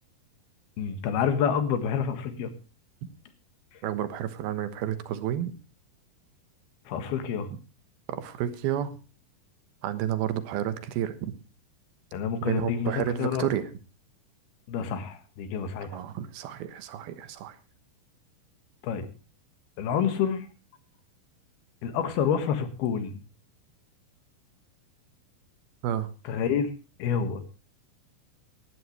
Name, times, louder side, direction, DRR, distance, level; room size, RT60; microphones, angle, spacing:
voice 1, 0.8-2.5 6.9-7.5 12.1-13.5 14.7-16.0 18.8-19.1 19.8-20.5 21.8-23.2 26.3-26.7 27.0-27.4, left 7 dB, 85° left, 9 dB, 3.6 m, -28 dB
voice 2, 3.8-5.5 7.5-7.6 8.1-8.9 9.8-11.3 12.4-13.7 15.9-17.6 25.8-26.1, right 10 dB, 85° right, 11 dB, 3.1 m, -30 dB
19.0 x 12.5 x 3.2 m, 0.31 s
omnidirectional pair, 4.3 m